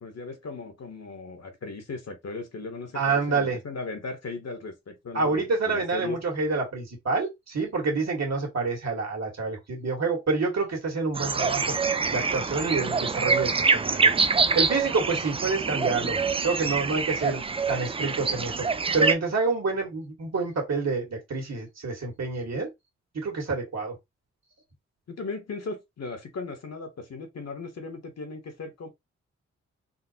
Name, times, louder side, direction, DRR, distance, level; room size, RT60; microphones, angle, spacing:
voice 1, 0.0-6.2 25.1-28.9, left 3 dB, 55° left, 1.2 m, -37 dB
voice 2, 2.9-3.6 5.1-11.7 12.1-14.1 14.5-16.2 16.4-17.4 17.7-18.7 18.9-22.7 23.1-24.0, right 4 dB, 60° right, 1.7 m, -28 dB
sound 1, 11.1-19.2, right 4 dB, 20° right, 0.3 m, -25 dB
3.9 x 2.0 x 2.8 m
supercardioid pair, 40°, 30 cm